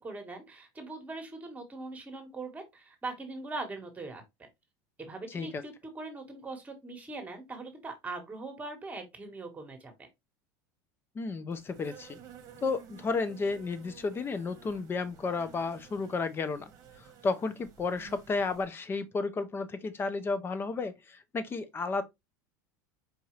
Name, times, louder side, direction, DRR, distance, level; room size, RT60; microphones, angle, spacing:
voice 1, 0.0-4.5 5.0-10.1, right 3 dB, 15° right, 1.5 m, -41 dB
voice 2, 5.3-5.6 11.1-12.2 12.6-16.7 17.0-22.0, left 4 dB, 25° left, 0.7 m, -32 dB
Insect, 11.5-18.7, right 8 dB, 35° right, 1.2 m, -53 dB
4.9 x 2.6 x 3.2 m
supercardioid pair, 120°, 10 cm